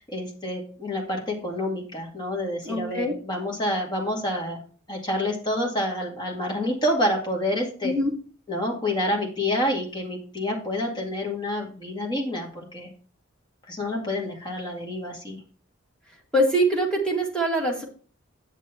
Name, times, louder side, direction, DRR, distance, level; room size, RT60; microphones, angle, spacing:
voice 1, 0.0-4.6 4.9-7.9 8.5-12.9 13.7-15.4, left 1 dB, 20° left, 0 dB, 1.9 m, -28 dB
voice 2, 2.6-3.1 7.8-8.1 16.3-17.8, right 1 dB, 5° left, -1 dB, 1.7 m, -23 dB
9.0 x 7.4 x 2.9 m, 0.40 s
head